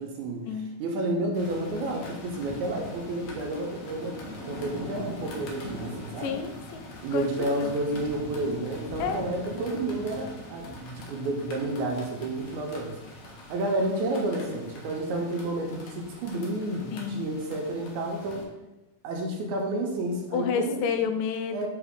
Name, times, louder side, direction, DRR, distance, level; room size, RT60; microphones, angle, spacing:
voice 1, 0.0-0.5 0.8-4.2 4.5-6.4 7.0-13.0 13.5-18.5 19.0-20.8 21.5-21.7, right 2 dB, 75° right, 2 dB, 1.9 m, -30 dB
sound 1, 1.3-18.4, left 1 dB, 65° left, 1.6 m, -42 dB
voice 2, 6.2-7.7 9.0-9.2 16.9-17.3 20.3-21.7, left 6 dB, 90° left, 8 dB, 2.2 m, -30 dB
5.4 x 4.8 x 3.6 m, 1.0 s
omnidirectional pair, 3.8 m